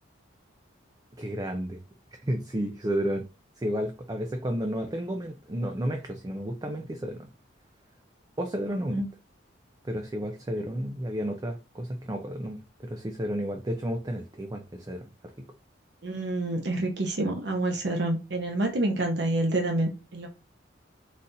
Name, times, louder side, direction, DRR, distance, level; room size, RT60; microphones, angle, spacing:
voice 1, 1.2-1.8 2.2-3.3 3.6-7.3 8.4-9.0 9.8-15.1 15.4-15.5, equal, 20° right, 0.4 m, -32 dB
voice 2, 16.0-20.3, right 2 dB, 60° right, 0.7 m, -28 dB
4.1 x 2.4 x 4.0 m
head